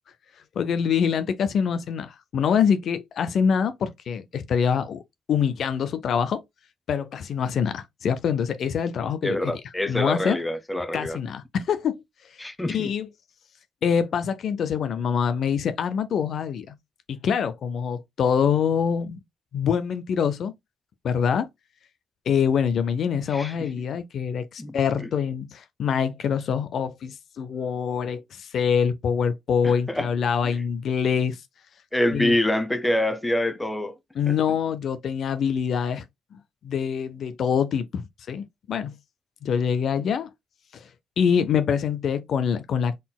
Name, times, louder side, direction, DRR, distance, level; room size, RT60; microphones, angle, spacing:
voice 1, 0.6-5.0 5.3-6.4 6.9-9.6 9.9-10.4 10.9-11.9 12.3-12.5 12.7-13.1 13.8-16.7 17.1-19.2 19.5-20.5 21.0-21.5 22.3-31.4 32.1-32.4 34.2-36.0 36.3-38.0 38.3-38.9 39.4-40.3 40.7-40.9 41.2-42.9, left 7 dB, 65° left, 0.5 m, -25 dB
voice 2, 9.2-11.2 12.4-12.9 23.3-23.5 24.6-24.7 25.0-25.1 29.6-30.1 30.4-30.6 31.9-33.9, left 1 dB, 10° left, 0.8 m, -26 dB
4.0 x 3.9 x 2.3 m
cardioid pair, 90°, 0 cm